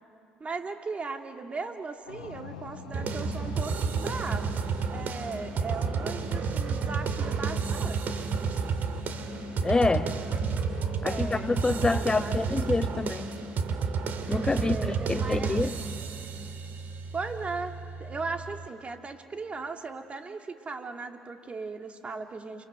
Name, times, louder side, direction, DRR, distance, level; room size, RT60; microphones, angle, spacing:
voice 1, 0.4-4.6 4.9-8.3 11.1-12.7 14.6-15.7 17.1-22.6, right 4 dB, 35° right, 5 dB, 2.5 m, -38 dB
sound 1, 2.1-12.0, left 5 dB, 90° left, 1.6 m, -47 dB
sound 2, 2.9-18.7, right 5 dB, 55° right, 2.3 m, -31 dB
voice 2, 9.6-10.2 11.0-13.3 14.3-15.8, left 3 dB, 20° left, 11 dB, 1.1 m, -27 dB
28.5 x 26.0 x 7.9 m, 2.5 s
hypercardioid pair, 55°, 4 cm